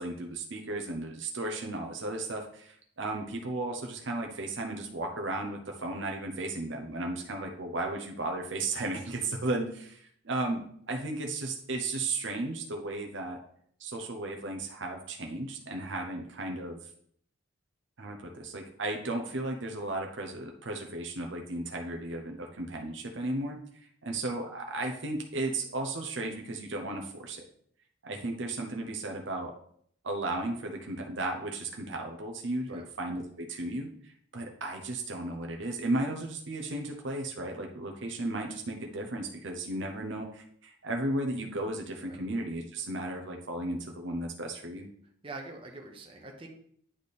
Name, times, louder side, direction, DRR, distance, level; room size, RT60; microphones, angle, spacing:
voice 1, 0.0-13.4 13.8-16.8 18.0-23.6 24.0-27.4 28.0-29.5 30.0-44.9, right 2 dB, 60° right, 2 dB, 0.8 m, -35 dB
voice 2, 45.2-46.5, right 2 dB, 25° right, 1 dB, 1.1 m, -44 dB
10.0 x 3.4 x 4.1 m, 0.64 s
head